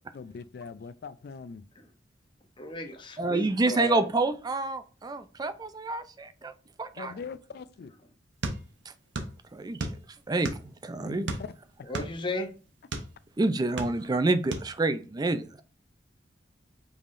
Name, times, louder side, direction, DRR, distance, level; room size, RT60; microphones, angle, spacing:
voice 1, 0.1-1.6 7.0-7.9 11.0-11.5, left 5 dB, 60° left, 0.4 m, -41 dB
voice 2, 2.6-4.1 11.8-12.5, left 1 dB, 25° left, 0.7 m, -35 dB
voice 3, 3.2-6.5 6.8-7.1 9.5-9.8 10.3-11.3 13.4-15.5, right 2 dB, 20° right, 0.4 m, -28 dB
sound 1, 8.4-9.4 9.6-10.8 11.2-13.1 13.6-14.2 14.5-14.7, right 2 dB, 75° right, 0.8 m, -34 dB
5.3 x 3.5 x 2.5 m
head